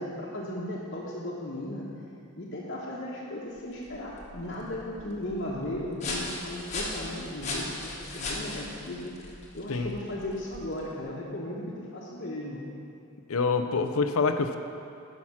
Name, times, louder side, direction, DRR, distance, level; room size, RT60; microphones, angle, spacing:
voice 1, 0.0-1.9 2.3-9.1 9.5-12.6, left 1 dB, 50° left, -7 dB, 1.2 m, -36 dB
sound 1, 3.6-11.0, left 2 dB, 35° left, 1.3 m, -38 dB
voice 2, 13.3-14.6, left 4 dB, 75° left, 8 dB, 0.6 m, -26 dB
11.0 x 6.0 x 5.8 m, 2.6 s
head